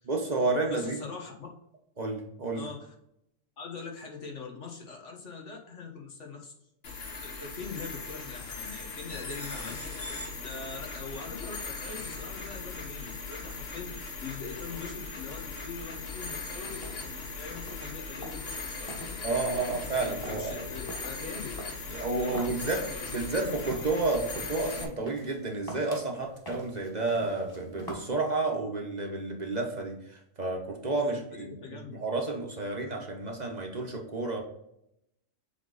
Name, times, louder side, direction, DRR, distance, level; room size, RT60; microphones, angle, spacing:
voice 1, 0.1-1.0 2.0-2.6 19.2-20.7 21.9-22.8 23.1-34.4, right 3 dB, 40° right, 1 dB, 1.0 m, -31 dB
voice 2, 0.7-1.5 2.5-2.9 3.6-6.5 7.1-9.8 10.3-19.1 20.0-21.5 22.2-23.5 31.0-32.0, left 5 dB, 80° left, 0 dB, 1.6 m, -42 dB
sound 1, 6.8-24.8, left 3 dB, 60° left, 1.3 m, -39 dB
sound 2, 16.7-28.0, right 1 dB, 20° left, 1.4 m, -47 dB
7.5 x 3.6 x 4.0 m, 0.80 s
omnidirectional pair, 1.2 m